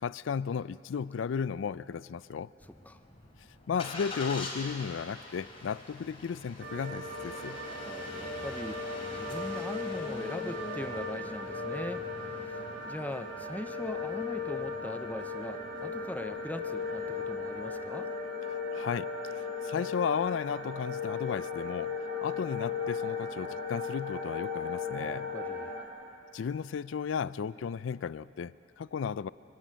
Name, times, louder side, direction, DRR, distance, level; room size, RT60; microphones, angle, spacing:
voice 1, 0.0-2.5 3.7-7.6 18.7-22.0 22.2-25.3 26.3-29.3, left 6 dB, 70° left, 18 dB, 0.4 m, -34 dB
Engine starting, 2.6-17.9, left 2 dB, 30° left, 3.1 m, -45 dB
sound 1, 6.6-25.9, left 4 dB, 55° right, 3.4 m, -37 dB
voice 2, 7.8-8.9 9.1-12.6 12.9-18.1 25.0-25.7, left 1 dB, 10° left, 10 dB, 0.5 m, -41 dB
25.5 x 17.0 x 6.3 m, 2.9 s
head